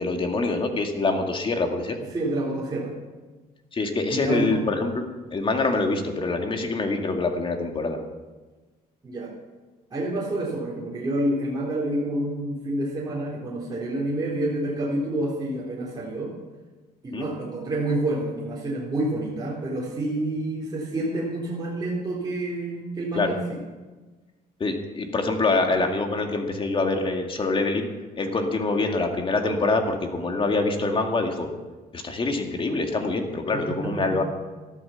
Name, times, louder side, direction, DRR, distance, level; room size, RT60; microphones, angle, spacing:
voice 1, 0.0-2.0 3.7-5.0 5.3-8.0 17.1-17.3 23.1-23.4 24.6-27.9 28.2-31.5 31.9-34.2, left 3 dB, 30° left, 4 dB, 2.2 m, -25 dB
voice 2, 2.1-2.9 4.1-4.6 9.0-9.3 9.9-16.3 17.0-23.6 33.5-34.2, right 1 dB, 25° right, -5 dB, 3.9 m, -28 dB
14.0 x 12.5 x 5.9 m, 1.3 s
cardioid pair, 110°, 17 cm